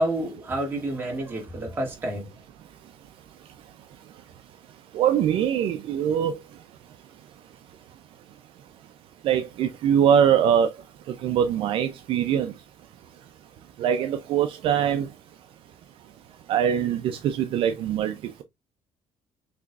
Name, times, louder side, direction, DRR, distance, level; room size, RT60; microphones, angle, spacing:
voice 1, 0.0-2.3, right 1 dB, 20° right, 1.8 m, -28 dB
voice 2, 4.9-6.3 9.2-10.7 11.2-12.5 13.8-15.1 16.5-18.4, right 9 dB, 55° right, 0.4 m, -22 dB
6.0 x 3.0 x 2.3 m
cardioid pair, 170°, 11 cm